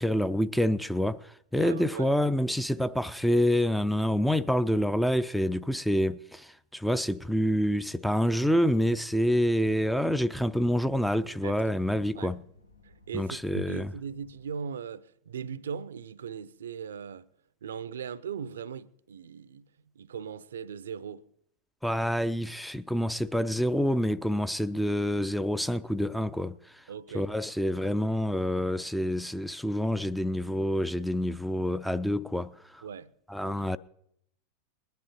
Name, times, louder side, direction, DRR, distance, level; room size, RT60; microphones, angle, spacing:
voice 1, 0.0-12.4 13.1-13.9 21.8-26.9 27.1-32.8 33.3-33.8, equal, ahead, 0.5 m, -27 dB
voice 2, 1.5-2.1 11.4-11.6 11.9-12.3 12.8-17.3 17.6-19.7 19.9-21.2 26.9-27.3 32.8-33.1 33.4-33.6, right 7 dB, 65° right, 0.6 m, -39 dB
sound 1, 9.2-14.6, left 2 dB, 80° left, 1.5 m, -58 dB
21.0 x 10.5 x 4.2 m
figure-of-eight pair, 90°, 0 cm